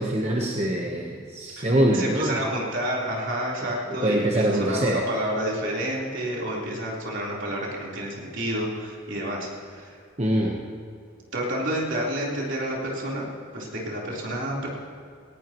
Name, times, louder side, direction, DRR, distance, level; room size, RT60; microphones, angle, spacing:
voice 1, 0.0-2.4 3.9-5.0 10.2-10.6, right 1 dB, 30° right, -1 dB, 1.1 m, -24 dB
voice 2, 1.9-10.0 11.3-13.3 13.5-14.7, right 1 dB, 60° right, -4 dB, 3.9 m, -29 dB
18.5 x 18.5 x 3.1 m, 2.3 s
head